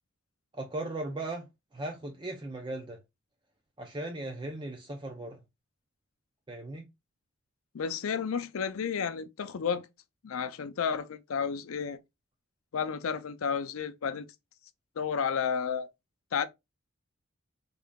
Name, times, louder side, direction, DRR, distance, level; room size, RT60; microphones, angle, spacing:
voice 1, 0.6-1.5 1.7-3.0 3.8-5.4 6.5-6.9, right 2 dB, 20° right, 0.5 m, -37 dB
voice 2, 7.7-9.9 10.2-12.0 12.7-14.3 15.0-15.9 16.3-16.5, left 6 dB, 85° left, 0.4 m, -31 dB
3.7 x 3.6 x 2.2 m
head